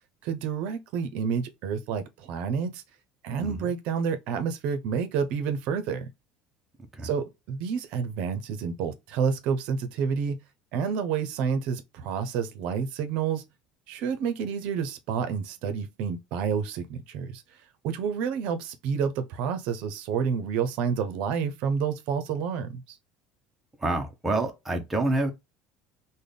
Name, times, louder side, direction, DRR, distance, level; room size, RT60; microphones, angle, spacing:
voice 1, 0.2-2.8 3.2-6.1 7.0-10.4 10.7-13.4 13.9-17.4 17.8-23.0, right 6 dB, 55° right, 0.6 m, -29 dB
voice 2, 23.8-25.3, right 2 dB, 10° right, 0.5 m, -27 dB
3.4 x 2.1 x 3.7 m
cardioid pair, 165°, 2 cm